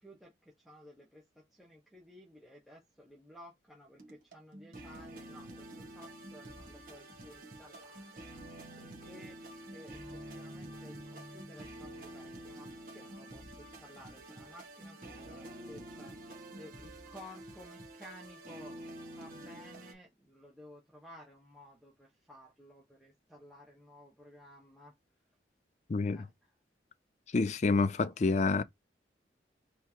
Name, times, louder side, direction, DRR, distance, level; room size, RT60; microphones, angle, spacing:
voice 1, 0.0-8.3 8.8-24.9 26.1-26.5, equal, ahead, 1.3 m, -55 dB
sound 1, 4.0-19.9, right 1 dB, 50° right, 1.5 m, -48 dB
voice 2, 25.9-26.2 27.3-28.6, left 3 dB, 40° left, 0.4 m, -28 dB
4.4 x 3.5 x 2.8 m
head